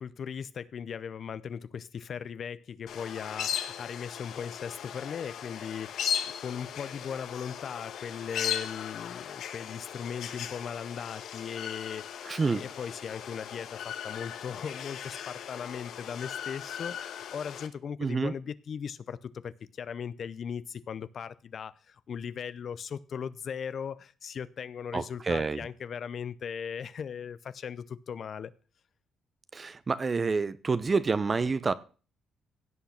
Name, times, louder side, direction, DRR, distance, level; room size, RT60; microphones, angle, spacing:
voice 1, 0.0-28.5, left 7 dB, 55° left, 0.6 m, -38 dB
sound 1, 2.9-17.7, left 9 dB, 75° left, 1.3 m, -38 dB
voice 2, 12.2-12.6 18.0-18.3 24.9-25.7 29.5-31.7, right 4 dB, 30° right, 0.8 m, -28 dB
16.5 x 5.8 x 5.9 m
cardioid pair, 90°, 0 cm